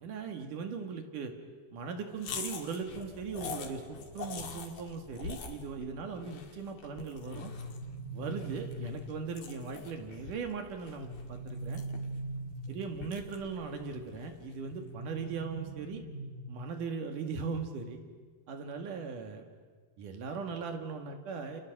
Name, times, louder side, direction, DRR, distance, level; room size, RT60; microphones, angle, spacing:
voice 1, 0.0-1.3 1.7-7.5 8.1-11.8 12.7-16.0 16.5-18.0 18.5-19.4 20.0-21.6, right 5 dB, 55° right, 5 dB, 3.1 m, -39 dB
sound 1, 2.2-14.7, left 5 dB, 50° left, 2.3 m, -45 dB
sound 2, 7.3-9.3 11.0-13.0 14.7-16.7, right 2 dB, 20° left, 3.8 m, -41 dB
30.0 x 29.0 x 6.1 m, 1.5 s
omnidirectional pair, 4.9 m